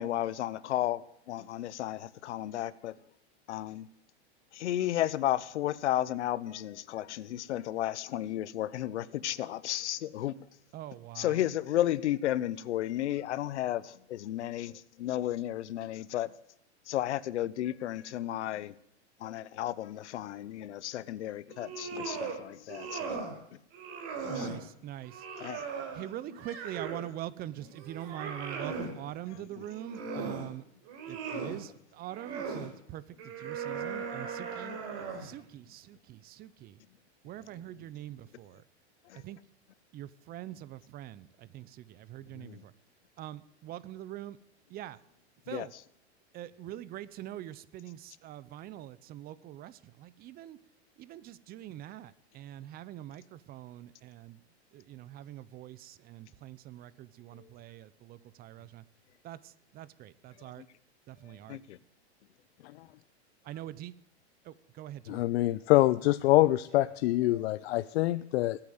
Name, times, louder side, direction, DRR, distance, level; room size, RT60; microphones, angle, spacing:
voice 1, 0.0-3.0 3.5-3.9 4.5-10.4 11.2-16.3 16.9-18.7 19.2-23.3 24.2-24.5 25.4-25.6 31.3-31.4 39.1-39.2 42.3-42.6 45.5-45.7 57.4-57.5 60.6-60.7 61.5-61.8 67.3-67.4, left 13 dB, 85° left, 0.9 m, -33 dB
voice 2, 10.7-11.4 24.3-25.2 25.9-30.6 31.1-34.8 35.2-36.8 37.2-38.6 39.1-39.4 39.9-42.7 43.2-44.4 44.7-45.0 45.5-45.7 46.3-50.6 51.0-54.4 54.7-58.8 59.2-60.6 61.1-61.6 63.4-63.9 64.4-65.2, right 13 dB, 25° right, 0.7 m, -44 dB
sound 1, 21.5-22.4 22.7-23.4 23.7-24.6 25.1-27.1 27.5-28.9 29.6-30.5 30.9-31.6 32.1-32.7 33.2-35.3, right 5 dB, 45° right, 3.9 m, -38 dB
voice 3, 65.1-68.6, left 16 dB, 65° left, 0.6 m, -25 dB
19.5 x 8.8 x 7.9 m
supercardioid pair, 135°, 34 cm